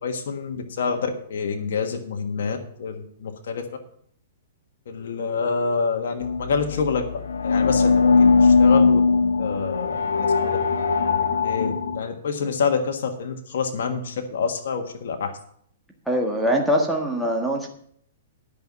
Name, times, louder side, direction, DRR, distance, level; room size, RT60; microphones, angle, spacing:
voice 1, 0.0-3.6 4.9-7.1 7.4-9.0 9.4-10.6 11.4-15.3, left 5 dB, 70° left, 4 dB, 1.5 m, -27 dB
Dronnie Darko, 6.2-12.0, left 4 dB, 85° left, 1.2 m, -20 dB
voice 2, 16.1-17.7, equal, ahead, 1 dB, 1.6 m, -22 dB
10.5 x 5.5 x 8.2 m, 0.64 s
hypercardioid pair, 145°, 0 cm